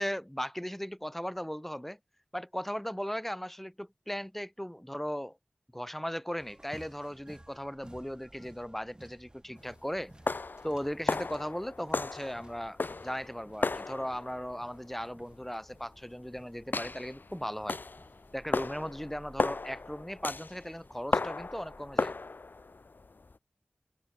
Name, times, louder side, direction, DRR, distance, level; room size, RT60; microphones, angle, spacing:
voice 1, 0.0-2.0 2.3-5.4 5.7-10.1 10.6-17.8 18.3-22.1, equal, 5° left, 1.2 m, -37 dB
sound 1, 6.4-22.1, right 1 dB, 25° right, 4.8 m, -57 dB
sound 2, 9.6-23.4, left 3 dB, 70° left, 1.6 m, -36 dB
wide cardioid pair, 65°, 3 cm